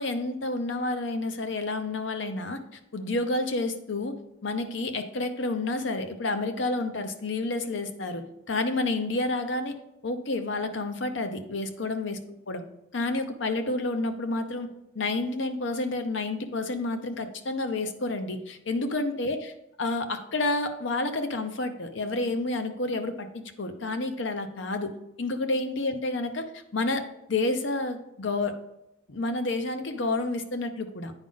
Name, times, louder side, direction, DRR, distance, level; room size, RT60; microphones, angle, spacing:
voice 1, 0.0-2.6 2.9-4.2 4.4-9.8 10.0-12.2 12.5-12.6 12.9-14.7 14.9-24.9 25.2-27.0 27.3-28.6 29.1-31.1, left 2 dB, 80° left, 8 dB, 0.8 m, -29 dB
8.9 x 5.2 x 3.9 m, 0.86 s
head